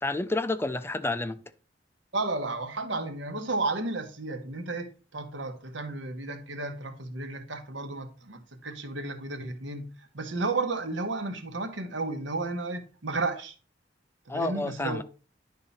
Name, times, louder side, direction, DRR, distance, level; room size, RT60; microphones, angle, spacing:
voice 1, 0.0-1.4 14.3-15.0, left 2 dB, 15° left, 0.4 m, -29 dB
voice 2, 2.1-9.9 10.1-13.5 14.3-15.0, right 3 dB, 80° right, 1.2 m, -33 dB
10.5 x 3.7 x 4.2 m
head